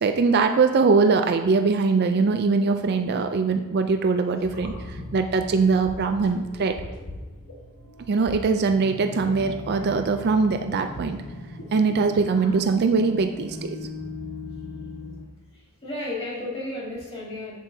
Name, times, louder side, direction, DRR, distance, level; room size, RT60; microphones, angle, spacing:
voice 1, 0.0-4.7 5.1-6.8 8.1-11.2 11.7-13.6, right 4 dB, 45° right, 7 dB, 0.4 m, -22 dB
sound 1, 4.4-15.2, left 2 dB, 90° left, 1.5 m, -39 dB
voice 2, 12.1-12.6 15.5-17.6, left 2 dB, 25° left, -6 dB, 2.2 m, -35 dB
7.9 x 7.4 x 2.7 m, 1.2 s
head